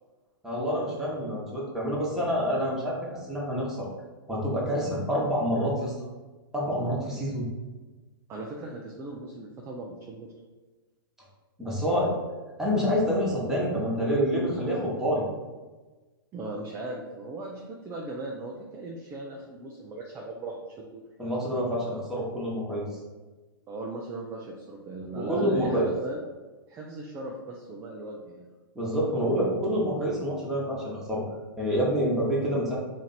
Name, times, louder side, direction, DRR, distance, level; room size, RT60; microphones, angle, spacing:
voice 1, 0.4-3.9 4.3-5.9 6.5-7.5 11.6-12.1 12.6-15.2 21.2-22.9 25.1-25.9 28.7-31.2 31.6-32.8, equal, 5° right, -6 dB, 1.1 m, -27 dB
voice 2, 8.3-10.3 16.3-21.0 23.7-26.2 26.7-28.5, right 2 dB, 20° right, -1 dB, 0.4 m, -38 dB
2.9 x 2.6 x 4.2 m, 1.3 s
hypercardioid pair, 115°, 12 cm